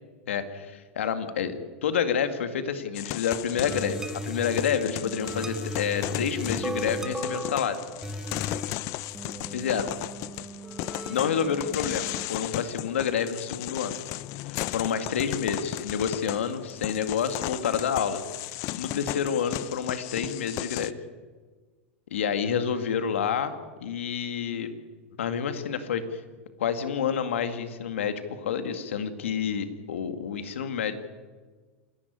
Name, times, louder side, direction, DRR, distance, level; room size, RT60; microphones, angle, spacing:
voice 1, 0.3-1.5 1.8-7.8 9.5-9.9 11.1-14.0 14.4-18.2 18.8-20.9 22.1-23.6 23.8-24.7 25.2-26.2 26.6-31.0, left 7 dB, 85° left, 9 dB, 2.2 m, -28 dB
sound 1, 2.9-20.9, left 17 dB, 50° left, 0.7 m, -36 dB
sound 2, 3.6-12.3, right 1 dB, 10° right, 1.6 m, -37 dB
28.0 x 11.5 x 9.6 m, 1.4 s
hypercardioid pair, 115°, 7 cm